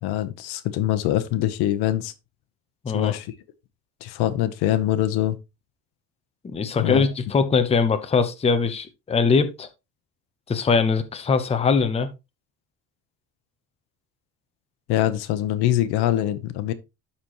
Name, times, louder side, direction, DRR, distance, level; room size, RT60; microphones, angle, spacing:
voice 1, 0.0-2.1 2.9-3.3 4.0-5.4 6.7-7.0 14.9-16.7, left 13 dB, 80° left, 1.0 m, -23 dB
voice 2, 2.8-3.1 6.4-9.7 10.5-12.1, left 5 dB, 15° left, 0.7 m, -22 dB
12.5 x 4.3 x 3.0 m
cardioid pair, 160°, 38 cm